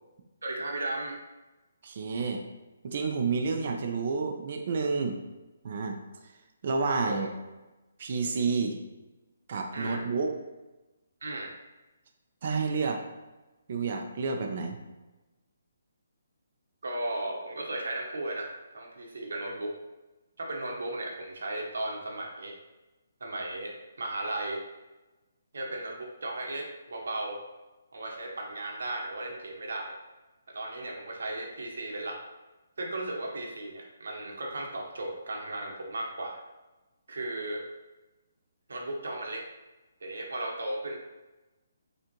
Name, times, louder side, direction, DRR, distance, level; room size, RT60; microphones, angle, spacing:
voice 1, 0.4-1.2 6.8-7.3 9.7-10.0 11.2-11.5 16.8-19.8 20.4-22.5 23.2-24.6 25.5-27.4 27.9-29.9 30.5-32.2 32.8-36.4 37.1-37.6 38.7-39.4 40.0-41.0, right 1 dB, 80° right, 0 dB, 1.1 m, -35 dB
voice 2, 1.8-2.4 2.8-5.2 5.6-6.0 6.6-7.3 8.0-8.8 9.5-10.3 12.4-13.0 13.7-14.8, right 4 dB, 45° right, 3 dB, 0.5 m, -29 dB
6.6 x 2.4 x 3.0 m, 1.1 s
hypercardioid pair, 165°, 0 cm